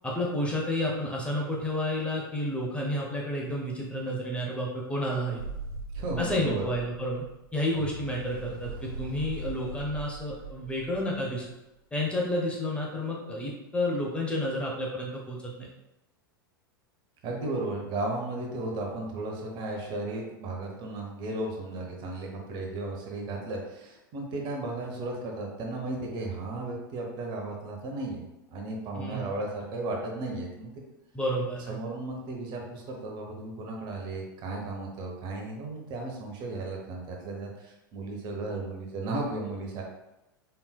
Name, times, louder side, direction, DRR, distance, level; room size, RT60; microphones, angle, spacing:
voice 1, 0.0-5.4 6.2-7.3 7.5-11.5 11.9-15.7 29.0-29.3 31.1-31.8, left 1 dB, 10° left, -2 dB, 0.7 m, -30 dB
sound 1, 5.4-11.5, right 2 dB, 90° left, 1.0 m, -40 dB
voice 2, 5.9-6.7 17.2-28.2 28.5-30.7 31.7-39.8, right 2 dB, 40° right, 0 dB, 1.0 m, -35 dB
4.4 x 3.6 x 2.3 m, 0.94 s
figure-of-eight pair, 90°, 12 cm